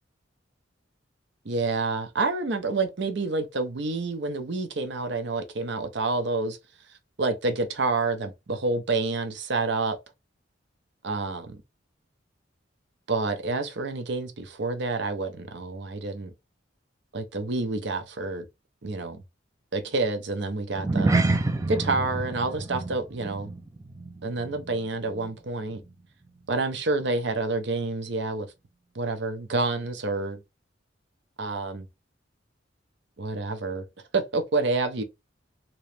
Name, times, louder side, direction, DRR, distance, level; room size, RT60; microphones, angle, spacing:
voice 1, 1.4-6.6 7.2-10.0 11.0-11.5 13.1-16.3 17.1-18.4 18.8-19.2 19.7-21.1 21.7-23.5 24.2-25.8 26.5-28.5 28.9-30.4 31.4-31.9 33.2-33.8 34.1-35.0, right 3 dB, 65° right, 0.7 m, -28 dB
sound 1, 20.7-25.4 25.6-25.9 26.4-26.5, right 2 dB, 15° right, 0.3 m, -28 dB
3.0 x 2.9 x 3.2 m
head